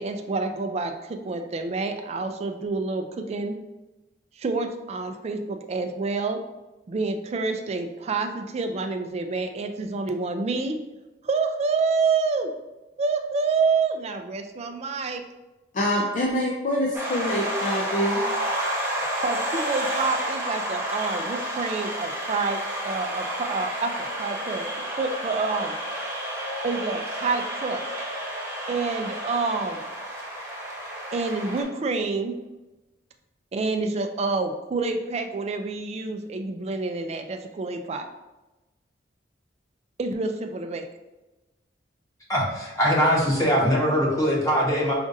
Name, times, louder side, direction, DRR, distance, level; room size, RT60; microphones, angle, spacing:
voice 1, 0.0-3.6 4.4-6.4 6.9-10.8 11.2-12.5 13.0-15.2 18.9-25.7 26.6-27.8 28.7-29.8 31.1-32.3 33.5-38.1 40.0-40.9, right 4 dB, 35° right, 6 dB, 0.3 m, -28 dB
voice 2, 15.7-18.2, equal, 45° left, -2 dB, 0.4 m, -25 dB
sound 1, 16.9-31.6, equal, 10° right, 0.9 m, -30 dB
voice 3, 42.3-44.9, equal, 15° left, -5 dB, 1.0 m, -22 dB
5.0 x 2.5 x 2.6 m, 1.1 s
head